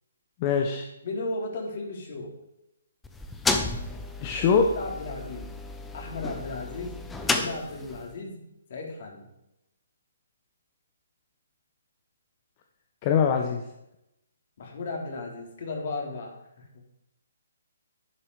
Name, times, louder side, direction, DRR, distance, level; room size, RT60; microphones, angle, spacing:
voice 1, 0.4-0.9 4.2-4.7 13.0-13.6, left 6 dB, 35° left, 4 dB, 1.2 m, -23 dB
voice 2, 1.0-2.3 4.7-5.5 5.9-7.0 7.2-8.4 8.7-9.3 14.6-16.8, left 3 dB, 55° left, 0 dB, 4.0 m, -35 dB
sound 1, 3.0-8.1, left 3 dB, 10° left, 1.0 m, -32 dB
11.5 x 9.1 x 4.9 m, 0.86 s
hypercardioid pair, 145°, 0 cm